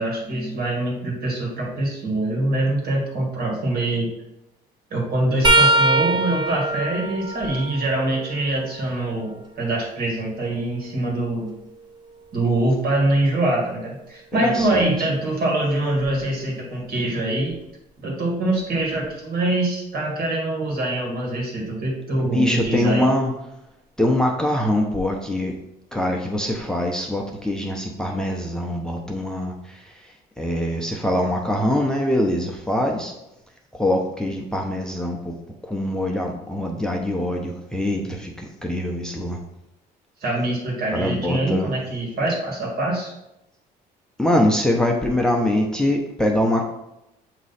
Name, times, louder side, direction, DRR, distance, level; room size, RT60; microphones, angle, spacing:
voice 1, 0.0-4.1 4.9-11.5 12.3-17.6 18.0-23.0 40.2-43.1, right 2 dB, 65° right, -1 dB, 2.1 m, -24 dB
sound 1, 5.4-9.2 9.7-11.7 14.6-14.8 16.0-16.2 17.5-17.6, right 2 dB, 25° right, 1.0 m, -24 dB
voice 2, 14.4-14.9 22.2-23.3 24.0-25.5 25.9-29.9 30.4-33.1 33.7-35.3 35.6-39.4 40.9-41.7 44.2-46.7, left 1 dB, 5° left, 1 dB, 0.7 m, -23 dB
7.5 x 3.0 x 4.1 m, 0.88 s
cardioid pair, 110°, 17 cm